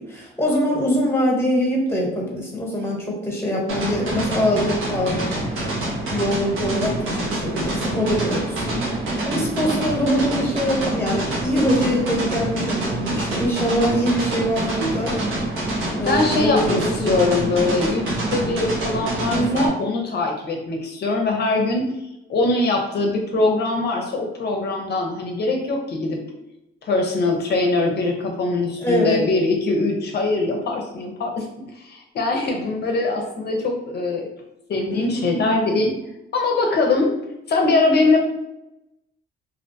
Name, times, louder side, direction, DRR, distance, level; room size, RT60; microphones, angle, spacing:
voice 1, 0.0-5.2 6.1-8.9 9.2-15.2 15.9-17.3 19.3-19.6 28.8-29.2 34.9-35.4, equal, 10° left, -1 dB, 0.9 m, -23 dB
sound 1, 3.7-19.7, right 1 dB, 80° right, 0.8 m, -26 dB
voice 2, 15.7-21.9 22.3-26.2 26.8-31.5 31.8-34.3 34.7-35.9 36.3-37.1 37.5-38.2, left 3 dB, 55° left, 2 dB, 0.5 m, -22 dB
2.4 x 2.1 x 2.7 m, 0.88 s
cardioid pair, 90°, 20 cm